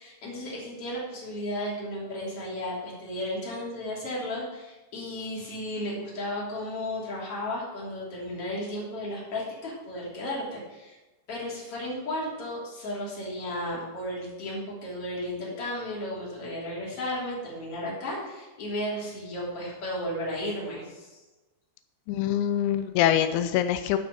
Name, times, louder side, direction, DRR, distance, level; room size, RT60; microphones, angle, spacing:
voice 1, 0.0-11.0 11.3-21.2, left 1 dB, 40° left, -5 dB, 3.7 m, -34 dB
voice 2, 22.1-24.0, left 11 dB, 90° left, 9 dB, 2.6 m, -24 dB
11.5 x 6.2 x 5.6 m, 1.1 s
omnidirectional pair, 4.5 m